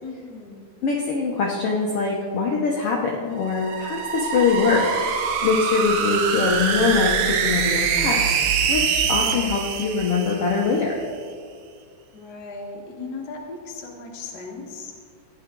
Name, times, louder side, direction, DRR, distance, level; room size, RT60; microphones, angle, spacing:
voice 1, 0.0-0.6 12.1-14.9, left 3 dB, 55° left, 0 dB, 1.1 m, -37 dB
voice 2, 0.8-8.3 8.7-11.0, left 4 dB, 85° left, -2 dB, 1.2 m, -23 dB
sound 1, 3.4-10.8, right 6 dB, 75° right, 2.5 m, -24 dB
15.5 x 10.5 x 3.8 m, 2.1 s
omnidirectional pair, 4.2 m